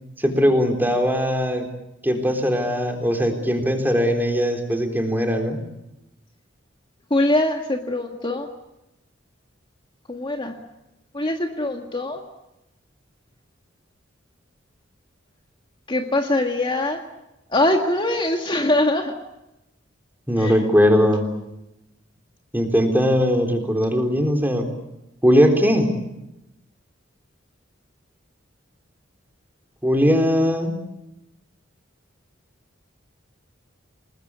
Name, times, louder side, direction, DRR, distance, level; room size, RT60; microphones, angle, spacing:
voice 1, 0.2-1.7 2.0-5.6 20.3-21.3 22.5-24.7 25.2-25.9 29.8-30.8, equal, 10° right, 4 dB, 3.8 m, -20 dB
voice 2, 7.1-8.5 10.1-10.5 11.1-12.2 15.9-17.0 17.5-19.1 20.4-20.7, left 1 dB, 25° left, 3 dB, 1.8 m, -22 dB
28.5 x 20.5 x 8.3 m, 0.91 s
head